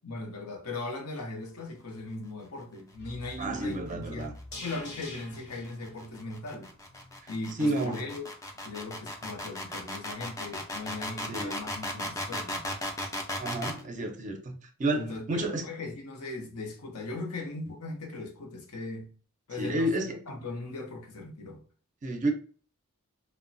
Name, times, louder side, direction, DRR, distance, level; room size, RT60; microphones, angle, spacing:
voice 1, 0.0-6.7 7.3-8.3 8.6-12.6 15.0-19.1 19.5-19.9 20.3-21.6, left 2 dB, 80° left, 0.7 m, -39 dB
sound 1, 3.0-7.2 7.5-7.6, left 2 dB, 50° left, 0.8 m, -46 dB
voice 2, 3.4-4.3 7.6-8.0 11.3-11.6 13.4-15.6 19.6-20.2 22.0-22.3, right 1 dB, 35° right, 0.5 m, -30 dB
sound 2, 4.5-13.8, left 1 dB, 15° left, 0.4 m, -36 dB
3.0 x 2.1 x 2.5 m
head